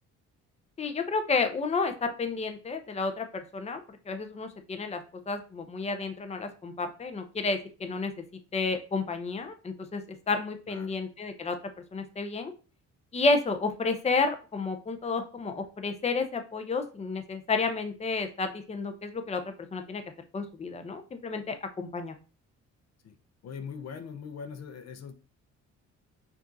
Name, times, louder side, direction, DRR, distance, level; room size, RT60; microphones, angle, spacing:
voice 1, 0.8-3.8 4.1-5.0 5.3-8.1 8.5-10.0 10.3-11.5 11.9-12.5 13.1-19.4 19.7-20.0 20.3-22.1, left 4 dB, 20° left, 6 dB, 0.7 m, -31 dB
voice 2, 23.4-25.1, left 6 dB, 60° left, 8 dB, 0.7 m, -41 dB
5.0 x 2.7 x 3.9 m, 0.35 s
cardioid pair, 90°, 30 cm